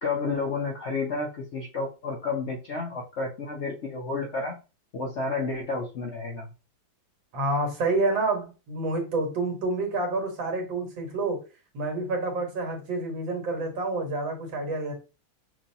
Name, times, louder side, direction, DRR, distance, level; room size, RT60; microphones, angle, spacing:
voice 1, 0.0-4.6 4.9-6.5, left 3 dB, 60° left, 0 dB, 0.7 m, -31 dB
voice 2, 7.3-11.4 11.7-14.9, right 2 dB, 85° right, 2 dB, 2.1 m, -28 dB
6.0 x 2.7 x 2.7 m, 0.31 s
omnidirectional pair, 2.0 m